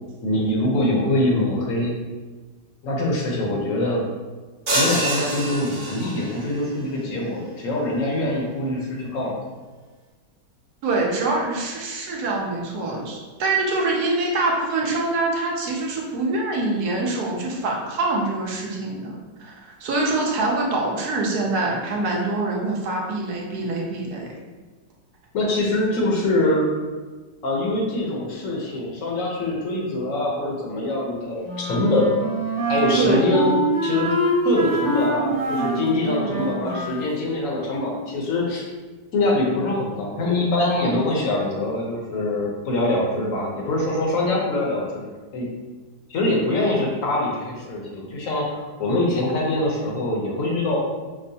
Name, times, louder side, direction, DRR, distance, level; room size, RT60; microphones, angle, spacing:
voice 1, 0.2-1.9 2.8-4.0 4.7-9.3 25.3-26.7 27.4-32.1 32.7-33.5 33.8-34.1 34.4-38.6 39.1-45.0 45.3-45.5 46.1-50.8, left 2 dB, 60° left, -2 dB, 0.9 m, -23 dB
sound 1, 4.7-6.5, right 1 dB, 45° right, 0.6 m, -25 dB
voice 2, 10.8-24.3 32.9-33.2, right 2 dB, 70° right, -1 dB, 1.1 m, -25 dB
Wind instrument woodwind instrument, 31.4-37.1, right 2 dB, 30° right, 1.0 m, -25 dB
5.2 x 2.1 x 2.7 m, 1.3 s
omnidirectional pair, 1.9 m